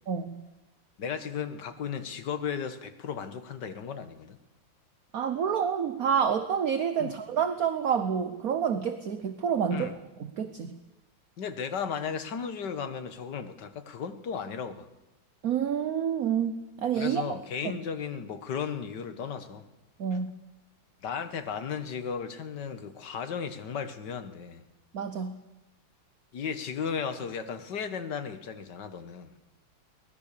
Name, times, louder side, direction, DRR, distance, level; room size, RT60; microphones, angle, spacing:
voice 1, 0.1-0.5 5.1-9.9 10.4-10.8 15.4-17.2 20.0-20.3 24.9-25.4, right 7 dB, 55° right, 1.3 m, -28 dB
voice 2, 1.0-4.4 7.0-7.1 9.7-10.0 11.4-14.9 16.9-19.7 20.1-20.2 21.0-24.6 26.3-29.3, left 7 dB, 65° left, 1.9 m, -35 dB
23.0 x 19.5 x 6.8 m
omnidirectional pair, 2.1 m